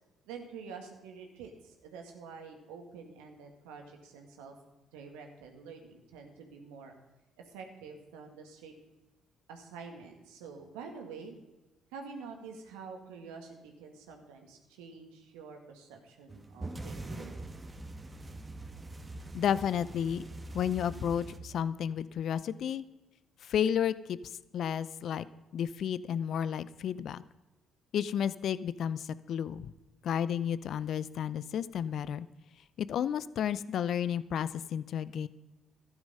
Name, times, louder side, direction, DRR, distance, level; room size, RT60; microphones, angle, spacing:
voice 1, 0.2-4.6 4.9-7.0 7.5-8.7 9.5-11.4 11.9-17.3, right 5 dB, 80° right, 3 dB, 1.9 m, -47 dB
sound 1, 16.3-21.4, right 2 dB, 25° right, 1.8 m, -43 dB
voice 2, 19.3-20.2 20.5-22.8 23.4-24.2 24.5-25.2 25.5-27.2 27.9-29.7 30.0-32.3 32.8-35.3, left 9 dB, 60° left, 17 dB, 0.6 m, -32 dB
13.0 x 11.0 x 5.5 m, 1.1 s
hypercardioid pair, 50°, 0 cm